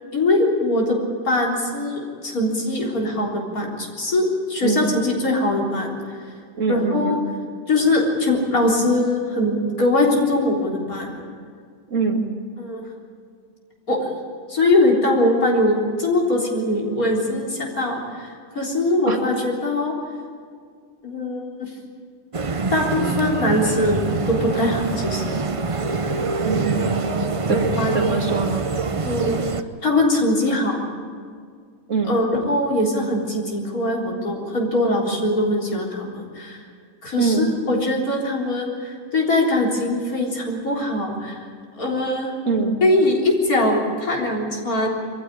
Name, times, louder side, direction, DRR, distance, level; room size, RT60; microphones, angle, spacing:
voice 1, 0.1-1.0 1.2-6.0 6.7-7.2 7.7-11.2 12.6-12.8 13.9-14.0 14.5-19.9 21.0-21.7 22.7-25.4 27.5-28.1 29.0-29.4 29.8-30.8 32.1-36.6 37.0-41.5 41.8-42.3 42.8-44.9, left 1 dB, 85° left, -1 dB, 4.3 m, -22 dB
voice 2, 4.6-4.9 6.6-7.2 11.9-12.3 19.1-19.2 26.4-27.2 27.5-27.7 27.9-28.7 31.9-32.2 37.2-37.5 42.5-42.8, right 4 dB, 60° right, 3 dB, 2.4 m, -23 dB
sound 1, 22.3-29.6, right 4 dB, 30° right, 0.7 m, -25 dB
24.0 x 15.0 x 10.0 m, 2.1 s
omnidirectional pair, 1.5 m